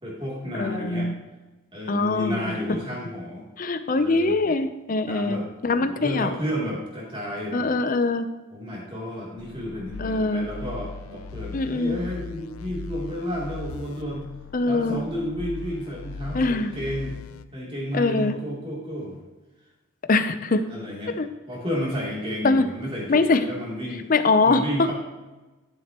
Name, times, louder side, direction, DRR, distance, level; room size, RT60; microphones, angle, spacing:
voice 1, 0.0-1.1 1.7-3.4 3.9-4.4 5.0-7.8 8.5-14.3 14.6-17.1 17.5-19.2 20.5-21.2 21.5-24.1 24.4-24.9, equal, 25° right, -4 dB, 2.9 m, -32 dB
voice 2, 0.5-1.1 1.9-2.6 3.6-6.3 7.5-8.3 10.0-10.5 11.5-12.0 14.5-15.0 16.3-16.7 17.9-18.4 20.1-20.6 21.2-21.3 22.4-22.6 23.1-23.4 24.1-24.6, left 3 dB, 40° left, 11 dB, 0.6 m, -23 dB
sound 1, 9.4-17.4, left 4 dB, 85° left, 0.4 m, -39 dB
12.0 x 7.5 x 3.0 m, 1.1 s
head